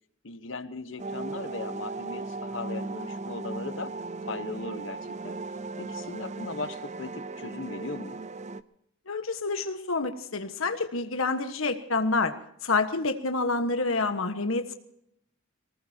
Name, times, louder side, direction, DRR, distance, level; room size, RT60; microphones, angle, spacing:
voice 1, 0.2-3.9 4.2-5.4 5.8-8.2, left 3 dB, 65° left, 11 dB, 1.2 m, -38 dB
sound 1, 1.0-8.6, right 3 dB, 35° right, 0.6 m, -37 dB
voice 2, 9.1-12.3 12.6-14.7, left 3 dB, 85° left, 8 dB, 1.4 m, -28 dB
24.0 x 19.5 x 2.9 m, 0.72 s
head